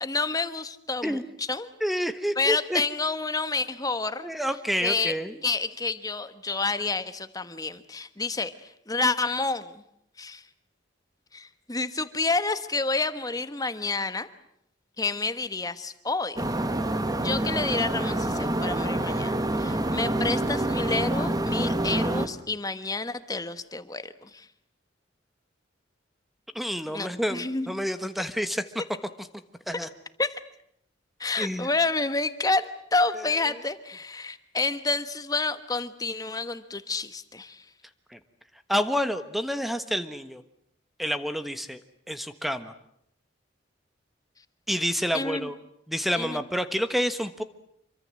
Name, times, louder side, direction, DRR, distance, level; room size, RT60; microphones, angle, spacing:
voice 1, 0.0-1.7 2.4-4.3 4.8-5.2 5.4-9.8 10.2-10.4 11.3-14.3 15.0-16.4 17.1-24.5 26.9-27.7 29.7-29.8 30.2-30.4 31.2-37.6 45.1-45.5 46.2-46.4, left 3 dB, 20° left, 12 dB, 1.3 m, -29 dB
voice 2, 1.8-2.8 4.2-5.3 26.5-28.6 29.7-29.9 31.4-31.7 33.2-33.3 38.1-38.2 38.7-40.4 41.0-41.8 42.1-42.7 44.7-45.6 45.9-47.4, equal, ahead, 10 dB, 1.2 m, -28 dB
sound 1, 16.4-22.3, right 1 dB, 20° right, 1.4 m, -27 dB
26.5 x 24.0 x 7.7 m, 0.72 s
head